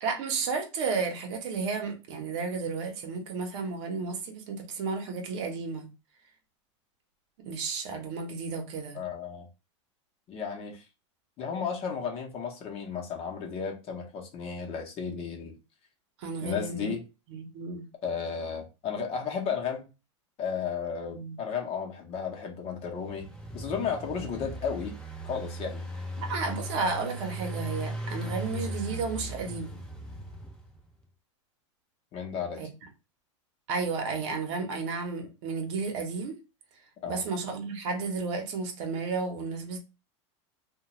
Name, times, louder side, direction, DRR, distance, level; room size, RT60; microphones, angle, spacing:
voice 1, 0.0-5.9 7.4-9.0 16.2-17.0 17.3-17.9 21.1-21.4 26.2-29.7 32.6-32.7 33.7-36.4 37.0-39.8, right 4 dB, 65° right, 0.8 m, -32 dB
voice 2, 8.9-9.5 10.3-10.9 11.4-15.5 16.4-17.0 18.0-19.9 20.4-25.0 25.2-25.9 32.1-32.6 37.0-37.2, left 6 dB, 40° left, 0.8 m, -34 dB
Engine, 22.7-30.8, right 1 dB, 5° left, 0.4 m, -38 dB
2.3 x 2.2 x 2.9 m
supercardioid pair, 120°, 16 cm